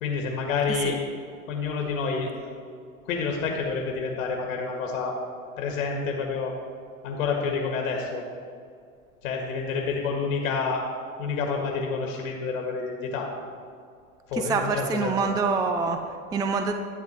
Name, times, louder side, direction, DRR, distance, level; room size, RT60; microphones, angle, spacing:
voice 1, 0.0-1.0 1.5-2.5 3.0-5.2 5.6-6.6 7.0-8.2 9.2-10.8 11.2-13.3 14.3-15.1, left 5 dB, 75° left, 1 dB, 1.9 m, -28 dB
voice 2, 14.3-16.7, right 4 dB, 10° right, 6 dB, 0.4 m, -26 dB
12.0 x 8.0 x 4.5 m, 2.2 s
hypercardioid pair, 105°, 43 cm